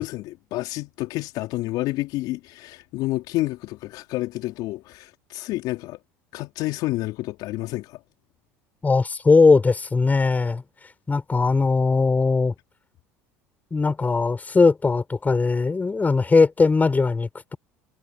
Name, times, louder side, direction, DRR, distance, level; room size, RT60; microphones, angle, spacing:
voice 1, 0.0-6.0 6.3-8.0, left 18 dB, 65° left, 4.2 m, -29 dB
voice 2, 8.8-10.6 11.1-12.6 13.7-17.6, left 4 dB, 20° left, 6.9 m, -19 dB
hypercardioid pair, 75°, 7 cm